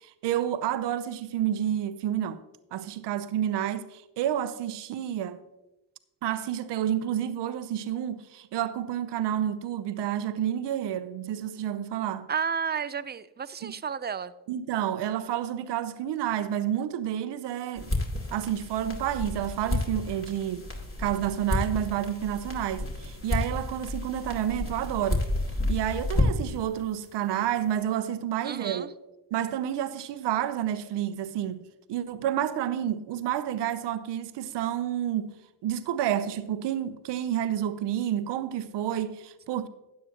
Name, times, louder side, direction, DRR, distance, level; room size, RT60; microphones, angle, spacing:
voice 1, 0.0-2.4 2.7-5.4 6.2-12.3 13.6-13.8 14.5-17.9 18.3-20.7 21.0-25.3 25.7-29.0 29.3-35.3 35.6-39.7, right 10 dB, 75° right, 0.8 m, -30 dB
voice 2, 12.3-14.3 28.4-28.9, right 7 dB, 25° right, 0.5 m, -32 dB
sound 1, 17.8-26.6, left 1 dB, 30° left, 2.6 m, -31 dB
13.0 x 8.9 x 2.9 m
supercardioid pair, 55°, 42 cm